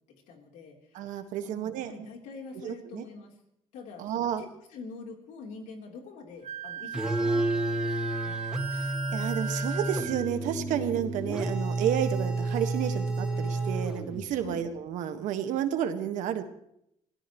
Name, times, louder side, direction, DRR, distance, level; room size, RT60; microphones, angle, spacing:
voice 1, 0.3-3.3 3.7-8.4 14.4-14.6, left 4 dB, 85° left, 1 dB, 3.7 m, -45 dB
voice 2, 0.9-1.9 2.6-3.0 4.0-4.4 8.7-16.4, right 10 dB, 85° right, 7 dB, 1.6 m, -31 dB
Wind instrument woodwind instrument, 6.4-10.3, right 7 dB, 65° right, 1.0 m, -37 dB
sound 1, 6.9-14.4, right 2 dB, 5° right, 1.9 m, -30 dB
25.0 x 17.0 x 3.1 m, 0.76 s
cardioid pair, 120°, 13 cm